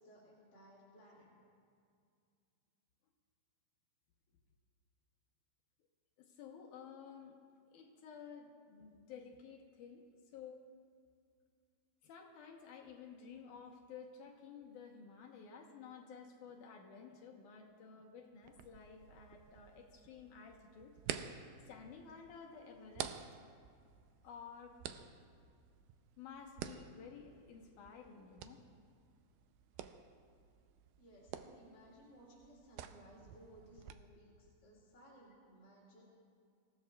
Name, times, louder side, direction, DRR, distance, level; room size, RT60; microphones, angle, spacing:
voice 1, 0.0-1.3 31.0-36.0, equal, 35° left, -7 dB, 2.9 m, -60 dB
voice 2, 6.2-7.4 7.7-10.1 10.3-10.7 12.0-21.0 21.7-23.4 24.2-24.8 26.2-28.6, left 6 dB, 65° left, 1 dB, 2.2 m, -53 dB
sound 1, 18.4-33.9, right 10 dB, 85° right, 1.9 m, -50 dB
26.0 x 15.5 x 2.3 m, 2.3 s
omnidirectional pair, 4.4 m